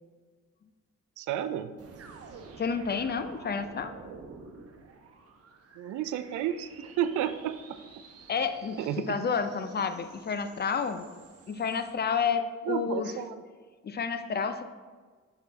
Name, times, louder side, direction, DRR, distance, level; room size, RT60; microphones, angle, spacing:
voice 1, 1.2-1.7 5.8-7.8 8.8-9.2 12.7-13.4, right 10 dB, 75° right, 11 dB, 0.5 m, -32 dB
sound 1, 1.8-11.9, right 4 dB, 50° right, 0.9 m, -50 dB
voice 2, 2.6-3.9 8.3-8.8 9.1-11.2 11.5-13.1 13.8-14.6, left 6 dB, 35° left, 10 dB, 0.5 m, -30 dB
6.5 x 5.0 x 4.0 m, 1.5 s
cardioid pair, 90°, 30 cm